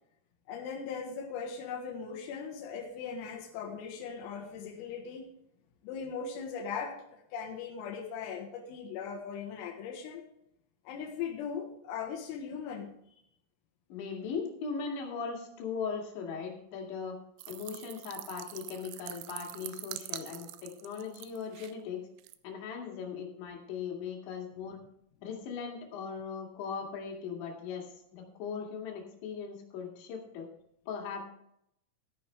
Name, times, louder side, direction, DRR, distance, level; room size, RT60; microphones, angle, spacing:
voice 1, 0.5-5.3 5.8-10.2 10.9-13.0, left 6 dB, 90° left, 3 dB, 3.9 m, -39 dB
voice 2, 13.9-17.2 17.5-22.0 22.4-24.8 25.2-30.5 30.9-31.2, left 6 dB, 65° left, -1 dB, 4.3 m, -39 dB
sound 1, 17.4-21.7 22.2-22.4, right 16 dB, 85° right, 2.6 m, -44 dB
14.0 x 10.0 x 3.3 m, 0.74 s
omnidirectional pair, 5.9 m